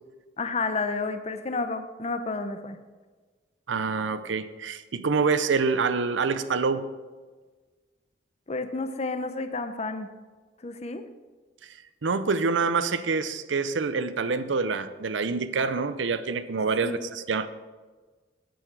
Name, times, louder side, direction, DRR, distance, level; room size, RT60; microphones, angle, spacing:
voice 1, 0.4-2.8 8.5-10.1 10.6-11.0 16.8-17.0, left 3 dB, 35° left, 9 dB, 0.6 m, -31 dB
voice 2, 3.7-6.9 12.0-17.5, right 4 dB, 85° right, 13 dB, 0.6 m, -26 dB
9.1 x 8.8 x 4.6 m, 1.4 s
head